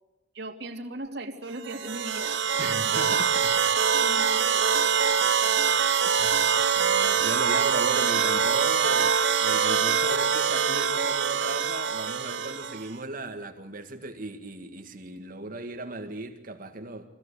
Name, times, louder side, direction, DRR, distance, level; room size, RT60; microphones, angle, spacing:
voice 1, 0.3-3.1 4.0-5.4, right 2 dB, 65° right, 3 dB, 3.0 m, -39 dB
sound 1, 1.6-12.9, right 6 dB, 85° right, 1.1 m, -24 dB
voice 2, 2.6-3.8 6.0-17.1, right 2 dB, 50° right, 5 dB, 2.0 m, -37 dB
24.5 x 17.0 x 8.5 m, 1.0 s
head